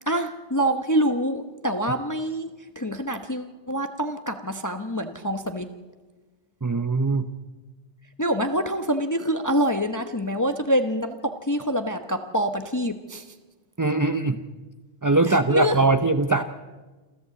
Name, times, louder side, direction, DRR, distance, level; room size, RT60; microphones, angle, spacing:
voice 1, 0.1-2.5 2.8-5.7 8.2-13.2 15.2-15.8, equal, 20° left, 7 dB, 0.9 m, -26 dB
voice 2, 6.6-7.2 13.8-14.4 15.0-16.4, right 3 dB, 20° right, 9 dB, 0.7 m, -21 dB
27.5 x 14.0 x 8.2 m, 1.3 s
omnidirectional pair, 1.1 m